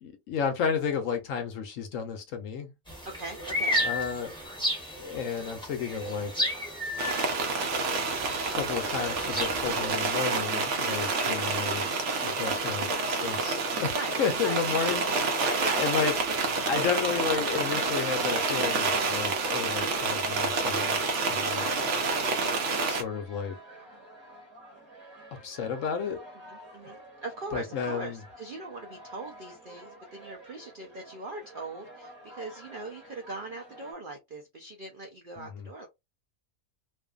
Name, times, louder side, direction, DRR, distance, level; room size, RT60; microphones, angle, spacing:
voice 1, 0.0-2.7 3.8-4.3 5.0-6.3 8.5-11.9 12.2-15.5 15.8-16.1 16.6-21.7 22.8-23.6 25.4-26.2 27.5-28.2 35.4-35.7, left 6 dB, 65° left, 0.9 m, -32 dB
sound 1, 2.9-9.9, left 1 dB, 5° left, 0.8 m, -33 dB
voice 2, 3.0-3.8 13.9-14.2 14.4-14.6 15.4-15.9 21.5-22.2 26.5-35.9, right 2 dB, 85° right, 0.4 m, -40 dB
sound 2, 7.0-23.0, right 3 dB, 60° right, 0.8 m, -28 dB
sound 3, 17.3-33.9, right 1 dB, 20° right, 1.0 m, -49 dB
2.6 x 2.5 x 2.3 m
omnidirectional pair, 1.6 m